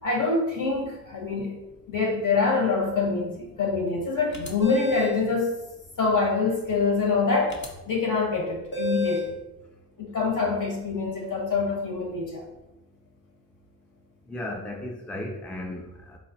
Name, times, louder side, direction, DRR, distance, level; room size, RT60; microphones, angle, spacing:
voice 1, 0.0-1.5 1.9-5.5 6.0-9.3 10.0-12.4, left 4 dB, 55° left, -1 dB, 1.2 m, -25 dB
sound 1, 4.3-5.2 7.5-7.7 8.7-9.3, left 2 dB, 30° left, 0.7 m, -29 dB
voice 2, 14.3-16.2, left 1 dB, 5° left, 1 dB, 0.4 m, -35 dB
3.9 x 2.0 x 4.1 m, 0.99 s
cardioid pair, 75°, 38 cm